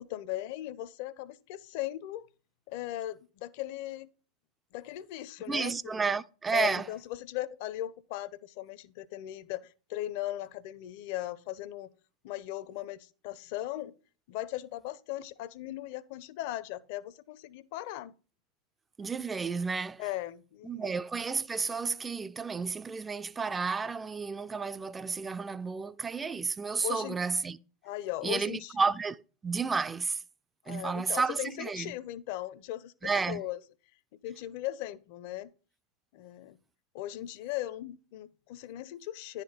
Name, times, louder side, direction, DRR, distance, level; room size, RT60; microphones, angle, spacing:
voice 1, 0.0-2.3 2.7-4.1 4.7-6.0 6.5-9.6 9.9-11.9 12.2-13.9 14.3-18.1 20.0-20.9 26.8-27.2 27.8-28.7 30.7-33.6 34.2-35.5 36.1-36.6 36.9-39.4, left 14 dB, 45° left, 0.5 m, -38 dB
voice 2, 5.5-6.9 19.0-20.1 20.6-27.6 28.2-30.2 30.7-32.0 33.0-33.5, right 5 dB, 15° right, 0.3 m, -32 dB
10.5 x 4.1 x 5.1 m
figure-of-eight pair, 90°, 0 cm